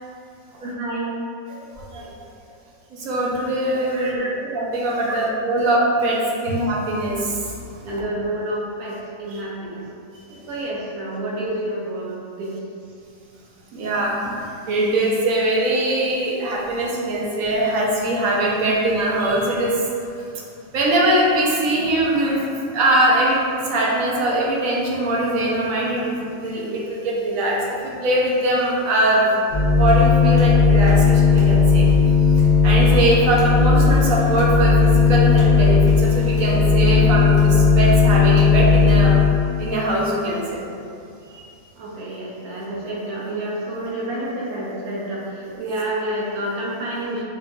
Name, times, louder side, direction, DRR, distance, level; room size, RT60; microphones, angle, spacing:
voice 1, 0.6-1.1 3.9-4.3 5.1-5.2 7.8-9.9 10.5-12.6 41.8-47.2, right 1 dB, 90° right, -4 dB, 1.2 m, -29 dB
voice 2, 1.5-2.1 2.9-4.2 4.5-7.4 9.3-9.4 10.3-10.4 13.7-19.7 20.7-23.4 23.7-29.2 29.8-31.8 32.6-39.1 39.6-40.6 41.3-41.4 45.4-45.5, right 1 dB, 70° right, -4 dB, 1.0 m, -22 dB
sound 1, 29.5-39.2, left 4 dB, 25° right, 1.0 m, -15 dB
4.6 x 2.6 x 2.2 m, 2.5 s
omnidirectional pair, 1.5 m